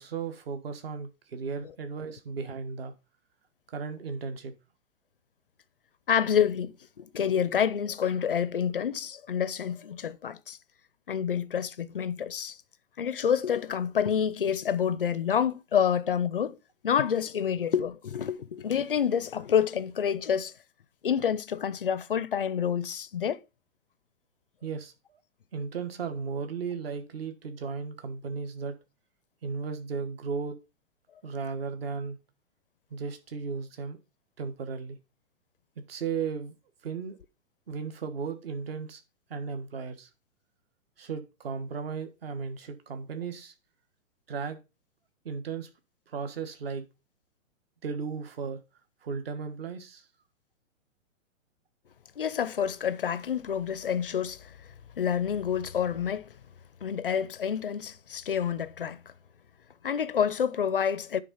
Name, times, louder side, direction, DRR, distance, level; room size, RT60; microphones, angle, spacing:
voice 1, 0.0-2.9 3.7-4.5 24.6-25.2 25.5-28.8 29.4-30.6 31.2-32.2 32.9-34.0 34.4-35.0 35.9-36.5 36.8-37.2 37.7-39.0 39.3-40.1 41.0-43.5 44.3-44.6 45.2-45.7 46.1-46.8 47.8-48.6 49.0-50.1, right 5 dB, 45° right, 1.5 m, -35 dB
voice 2, 6.1-10.6 11.1-12.6 13.0-16.6 16.8-20.5 21.0-23.4 52.2-54.6 55.0-56.4 56.8-59.0 59.8-61.2, left 8 dB, 45° left, 0.5 m, -28 dB
9.6 x 3.8 x 5.5 m
hypercardioid pair, 175°, 40 cm